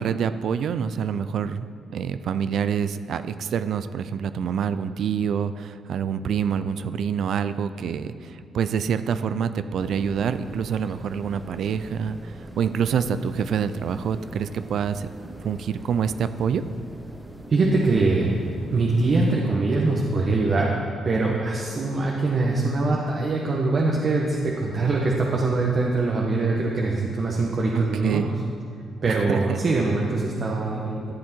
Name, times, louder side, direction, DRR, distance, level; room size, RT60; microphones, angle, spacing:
voice 1, 0.0-1.6 1.9-15.1 15.4-16.6 27.7-28.3 29.1-29.6, right 7 dB, 65° right, 12 dB, 0.4 m, -26 dB
sound 1, 9.8-19.4, right 1 dB, 10° right, 0.9 m, -42 dB
voice 2, 17.5-18.3 18.7-20.7 21.0-28.2 29.0-31.1, right 3 dB, 45° right, -2 dB, 1.3 m, -23 dB
13.5 x 7.7 x 4.5 m, 2.4 s
cardioid pair, 90°, 0 cm